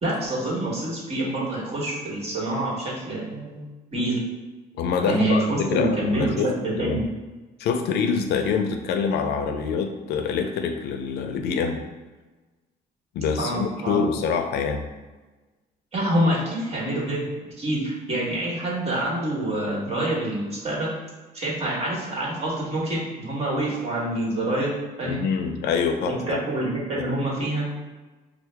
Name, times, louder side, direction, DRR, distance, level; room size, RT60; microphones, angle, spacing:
voice 1, 0.0-3.6 3.9-4.2 5.1-6.3 6.6-7.0 13.4-14.0 15.9-17.3 17.6-20.9 21.3-25.2 26.1-27.7, right 1 dB, 40° right, -5 dB, 1.4 m, -26 dB
voice 2, 4.8-7.1 7.6-11.8 13.1-14.8 25.0-26.4 27.0-27.1, left 6 dB, 75° left, 5 dB, 0.5 m, -25 dB
4.5 x 2.0 x 3.3 m, 1.2 s
cardioid pair, 110°, 17 cm